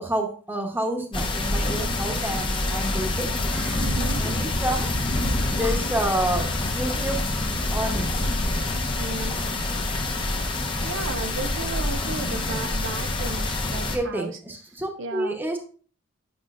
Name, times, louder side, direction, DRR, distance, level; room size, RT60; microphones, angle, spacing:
voice 1, 0.0-3.8 4.2-7.2 7.7-8.3 13.8-15.6, right 1 dB, 10° right, 3 dB, 1.0 m, -29 dB
sound 1, 1.1-14.0, left 2 dB, 25° left, 0.8 m, -26 dB
voice 2, 3.8-4.3 9.0-9.4 10.8-14.4 15.0-15.4, right 4 dB, 60° right, 8 dB, 0.5 m, -34 dB
8.5 x 6.5 x 2.5 m, 0.42 s
head